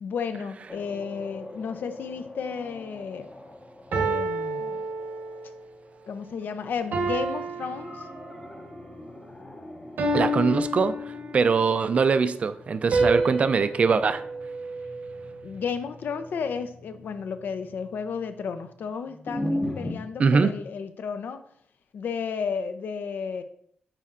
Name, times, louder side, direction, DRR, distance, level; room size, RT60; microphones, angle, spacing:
voice 1, 0.0-3.3 3.9-4.9 6.1-8.1 15.4-21.4 21.9-23.4, left 6 dB, 85° left, 10 dB, 0.5 m, -33 dB
sound 1, 0.7-19.9, left 1 dB, 20° left, 0.6 m, -41 dB
sound 2, 2.4-2.8 3.9-5.5 6.9-8.6 10.0-11.6 12.9-15.3, right 2 dB, 85° right, 1.1 m, -29 dB
voice 2, 10.1-10.9 11.3-14.2 20.2-20.5, right 5 dB, 45° right, 11 dB, 0.3 m, -22 dB
9.8 x 4.3 x 2.5 m, 0.67 s
wide cardioid pair, 160°, 3 cm